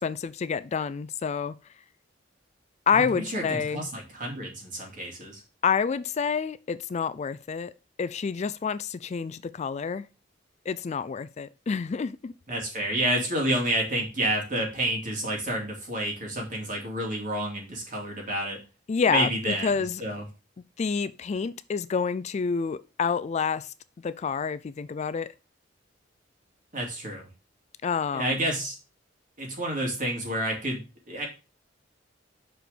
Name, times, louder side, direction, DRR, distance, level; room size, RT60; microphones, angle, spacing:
voice 1, 0.0-1.5 2.9-3.8 5.6-7.7 8.0-10.1 10.7-12.3 18.9-20.0 20.8-23.7 24.0-25.3 27.8-28.4, left 6 dB, 35° left, 0.3 m, -28 dB
voice 2, 2.9-5.4 12.5-18.6 19.1-20.2 26.7-27.3 28.1-28.7 29.4-31.3, right 1 dB, 45° right, 2.5 m, -29 dB
6.2 x 4.9 x 5.1 m
head